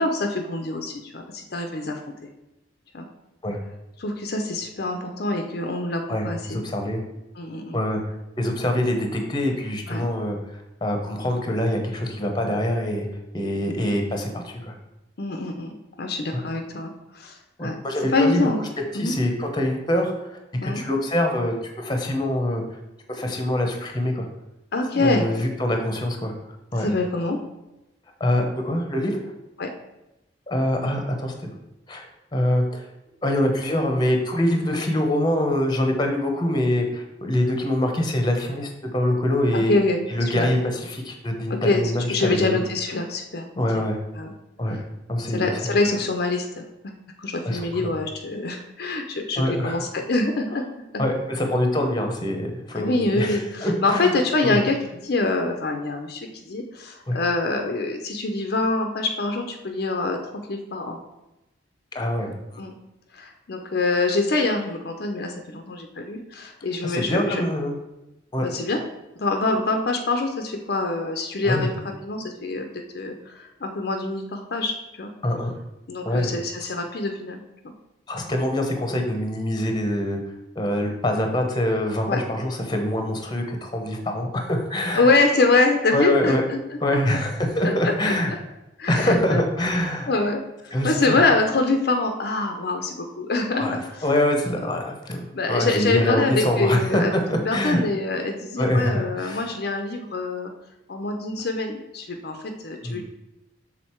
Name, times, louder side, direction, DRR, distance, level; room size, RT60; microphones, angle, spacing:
voice 1, 0.0-2.0 2.9-3.1 4.0-6.6 7.4-7.8 9.9-10.0 15.2-17.8 18.1-18.6 18.9-19.1 20.6-20.8 24.7-25.3 26.8-27.4 29.6-29.7 39.5-40.0 40.3-40.5 41.5-43.8 44.2-44.3 44.7-44.8 45.3-46.9 47.2-50.6 50.9-51.0 52.7-61.0 62.6-62.7 63.1-67.4 68.4-68.8 69.2-72.7 72.9-75.1 75.9-77.4 77.6-77.7 82.0-82.2 84.9-86.6 87.6-88.1 88.8-89.4 90.1-90.4 90.8-94.0 94.6-94.7 95.3-100.5 100.9-103.0, left 3 dB, 55° left, 4 dB, 0.6 m, -25 dB
voice 2, 6.1-7.0 7.7-8.0 8.4-10.4 10.8-13.1 13.3-14.7 16.3-16.4 17.6-18.5 18.9-22.6 23.1-24.3 24.9-26.3 26.7-26.9 28.2-29.2 30.5-31.5 31.9-32.9 33.2-39.7 40.1-42.6 43.6-44.0 44.6-44.8 45.1-45.8 47.4-47.9 49.4-49.8 51.0-54.6 57.1-57.2 61.9-62.6 66.8-67.7 68.3-68.5 71.4-71.7 75.2-75.5 76.0-76.3 78.1-80.2 80.6-85.1 85.9-86.4 86.8-88.3 88.9-90.1 90.7-91.2 93.6-97.8 98.6-99.5 102.8-103.0, left 1 dB, 25° left, 3 dB, 0.9 m, -24 dB
6.4 x 3.8 x 4.4 m, 0.95 s
head